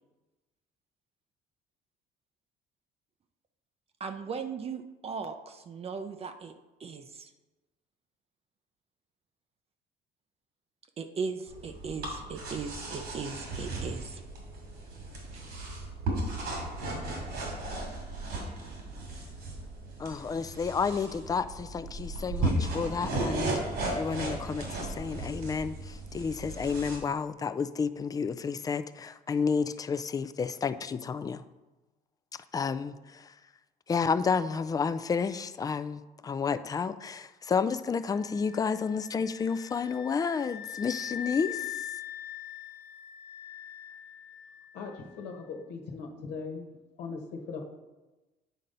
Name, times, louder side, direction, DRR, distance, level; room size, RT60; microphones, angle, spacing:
voice 1, 4.0-6.5 6.8-7.3 11.0-14.2 16.5-16.6, right 5 dB, 35° right, 7 dB, 0.5 m, -38 dB
sound 1, 11.5-27.0, right 2 dB, 80° right, 2.6 m, -35 dB
voice 2, 20.0-31.4 32.5-33.3 33.9-41.7, left 5 dB, 20° left, 12 dB, 0.3 m, -31 dB
sound 2, 38.1-44.9, left 11 dB, 70° left, 0.9 m, -42 dB
voice 3, 44.7-46.6 47.0-47.6, left 4 dB, 85° left, 2 dB, 1.2 m, -39 dB
9.1 x 3.9 x 5.5 m, 1.1 s
cardioid pair, 110°, 17 cm